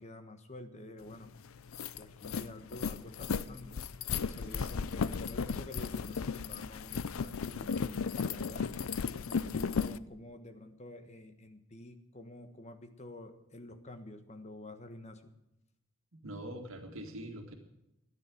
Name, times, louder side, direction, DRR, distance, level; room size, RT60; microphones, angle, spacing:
voice 1, 0.0-1.3 2.0-3.8 4.2-8.8 9.3-15.3, left 2 dB, 30° left, 8 dB, 1.4 m, -49 dB
sound 1, 1.1-1.2 1.5-10.0, left 5 dB, 80° left, 0.5 m, -35 dB
voice 2, 16.1-17.5, right 1 dB, 75° right, 3 dB, 2.1 m, -43 dB
13.0 x 9.9 x 7.7 m, 0.88 s
head